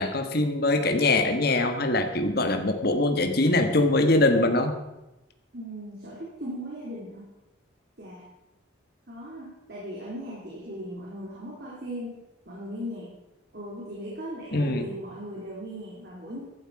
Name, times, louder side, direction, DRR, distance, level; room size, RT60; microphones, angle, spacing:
voice 1, 0.0-4.8 14.5-14.9, left 2 dB, 50° left, 6 dB, 1.5 m, -23 dB
voice 2, 5.5-7.3 8.0-8.3 9.1-13.1 13.5-16.4, equal, 50° right, -5 dB, 3.4 m, -38 dB
15.0 x 12.0 x 4.8 m, 0.97 s
head